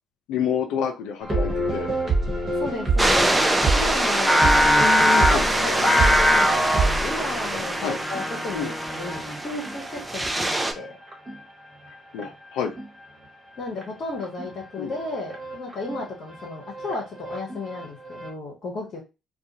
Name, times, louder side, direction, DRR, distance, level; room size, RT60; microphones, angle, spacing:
voice 1, 0.3-1.9 5.3-5.4 7.8-8.0 8.5-8.7 12.1-12.7 14.8-14.9, left 8 dB, 75° left, 5 dB, 0.4 m, -28 dB
sound 1, 1.2-11.5 11.8-13.0 13.8-13.9 14.2-14.6 14.9-18.3, right 2 dB, 35° right, 1.2 m, -28 dB
voice 2, 2.6-3.3 3.7-4.4 5.1-11.0 13.6-19.0, left 2 dB, 55° left, -1 dB, 0.9 m, -34 dB
sound 2, 3.0-10.7, right 1 dB, 15° right, 0.5 m, -25 dB
Singing, 4.3-9.5, equal, 10° left, 0.9 m, -22 dB
2.4 x 2.3 x 2.7 m, 0.26 s
hypercardioid pair, 50°, 0 cm